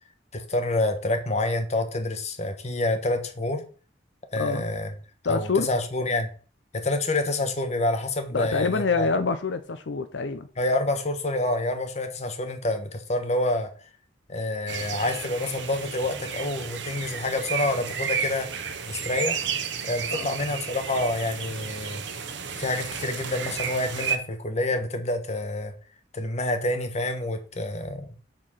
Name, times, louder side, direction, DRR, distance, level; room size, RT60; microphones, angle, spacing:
voice 1, 0.3-3.6 4.3-4.9 5.3-6.3 6.7-9.1 10.6-13.7 14.3-18.5 18.9-19.4 19.8-22.0 22.6-25.7 26.1-28.1, left 2 dB, 40° left, 1.3 m, -27 dB
voice 2, 4.4-4.7 5.2-5.7 8.3-10.5 20.1-20.3, left 4 dB, 80° left, 0.6 m, -26 dB
sound 1, 14.7-24.2, right 6 dB, 75° right, 1.0 m, -32 dB
7.7 x 4.5 x 5.6 m
head